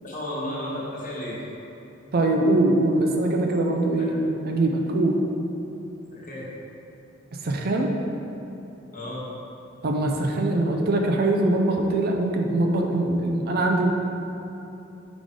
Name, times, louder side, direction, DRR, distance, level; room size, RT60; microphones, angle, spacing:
voice 1, 0.0-1.4 4.0-4.1 6.1-6.5 8.9-9.2 13.5-13.6, left 1 dB, 40° left, -6 dB, 1.3 m, -33 dB
voice 2, 2.1-5.2 7.4-8.0 9.8-13.9, right 2 dB, 50° right, 2 dB, 0.5 m, -22 dB
4.9 x 4.0 x 5.0 m, 2.9 s
head